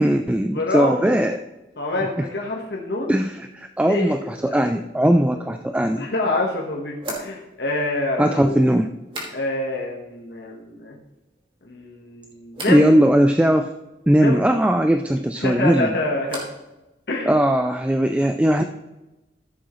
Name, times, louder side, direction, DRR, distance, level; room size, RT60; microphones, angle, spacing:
voice 1, 0.0-1.4 3.1-6.1 8.2-8.9 12.7-13.7 14.1-15.9 17.3-18.6, equal, 5° right, 7 dB, 0.3 m, -19 dB
voice 2, 0.5-1.2 1.8-3.2 3.9-4.6 5.0-5.1 6.0-8.7 9.3-11.0 11.7-12.9 14.2-14.4 15.4-16.4 17.1-17.3, left 2 dB, 70° left, -1 dB, 1.3 m, -26 dB
sound 1, 5.7-5.8 7.0-9.8 10.1-10.7 11.0-11.7 12.5-12.9 15.3-16.7 17.0-17.6, right 1 dB, 30° right, 2.4 m, -39 dB
14.0 x 7.4 x 3.1 m, 1.0 s
head